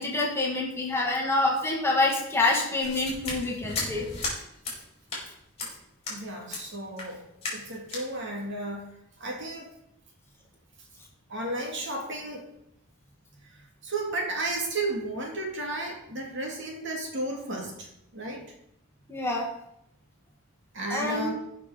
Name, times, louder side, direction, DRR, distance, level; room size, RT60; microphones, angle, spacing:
voice 1, 0.0-4.1 19.1-19.5 20.9-21.3, left 2 dB, 10° left, -2 dB, 1.9 m, -26 dB
sound 1, 2.8-4.4 4.6-4.8 5.1-5.3 5.6-5.7 6.0-6.2 6.5-6.6 7.0-7.1 7.4-7.6 7.9-8.1, left 3 dB, 30° left, 4.5 m, -34 dB
voice 2, 6.1-7.2 7.5-8.9 9.2-9.7 11.3-12.5 13.5-18.4 20.7-21.3, right 2 dB, 60° right, 0 dB, 2.7 m, -33 dB
16.0 x 6.0 x 5.1 m, 0.79 s
head